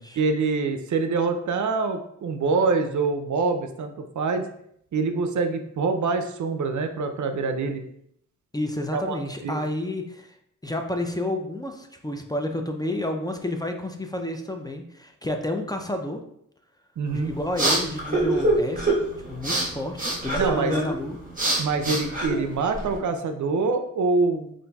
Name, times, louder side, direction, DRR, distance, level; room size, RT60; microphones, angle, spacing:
voice 1, 0.2-4.4 4.9-7.8 8.9-9.2 9.4-9.6 17.0-17.3 20.4-20.7 21.6-24.5, right 4 dB, 70° right, 7 dB, 0.5 m, -25 dB
voice 2, 8.5-10.3 10.6-16.2 17.1-19.0 19.3-21.2, left 1 dB, 15° left, 4 dB, 0.4 m, -30 dB
sound 1, 17.1-23.0, right 2 dB, 25° right, 1.2 m, -26 dB
5.3 x 2.5 x 2.2 m, 0.72 s
cardioid pair, 65°, 31 cm